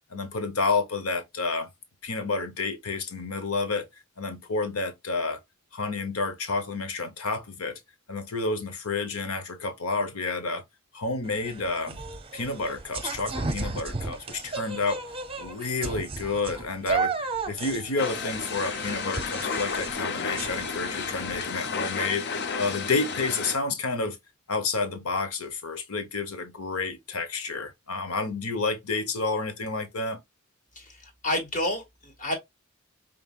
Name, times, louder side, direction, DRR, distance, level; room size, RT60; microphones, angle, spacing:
voice 1, 0.1-1.7 2.0-3.8 4.2-5.4 5.7-7.8 8.1-10.6 10.9-12.0 12.3-15.0 15.4-24.2 24.5-30.2, left 3 dB, 80° left, 1.0 m, -30 dB
sound 1, 11.3-21.4, right 4 dB, 25° right, 0.7 m, -34 dB
sound 2, 18.0-23.6, left 5 dB, 55° left, 0.6 m, -32 dB
voice 2, 30.8-32.3, left 1 dB, 40° left, 1.7 m, -30 dB
5.3 x 3.4 x 2.3 m
head